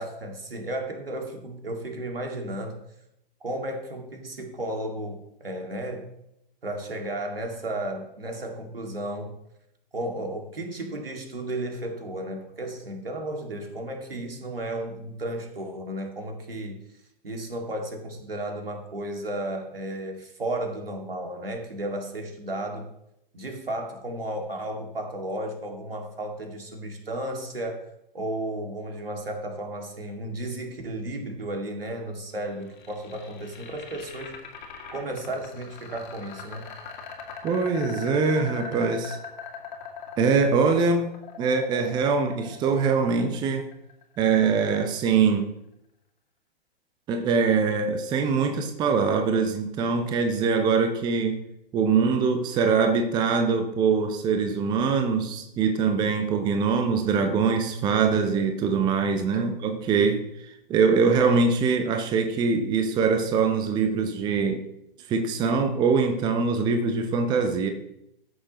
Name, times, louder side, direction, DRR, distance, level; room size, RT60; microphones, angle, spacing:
voice 1, 0.0-2.8 3.4-6.0 6.6-9.3 9.9-16.8 17.2-22.8 23.3-27.9 28.1-34.4 34.9-36.6 59.3-59.6, right 1 dB, 75° right, 2 dB, 2.2 m, -33 dB
sound 1, 32.4-44.5, left 5 dB, 55° left, 2.2 m, -41 dB
voice 2, 37.4-39.2 40.2-41.1 41.4-43.7 44.2-45.5 47.1-51.4 51.7-64.6 65.1-67.7, right 5 dB, 15° right, 6 dB, 0.6 m, -23 dB
13.5 x 6.5 x 3.0 m, 0.81 s
figure-of-eight pair, 115°, 29 cm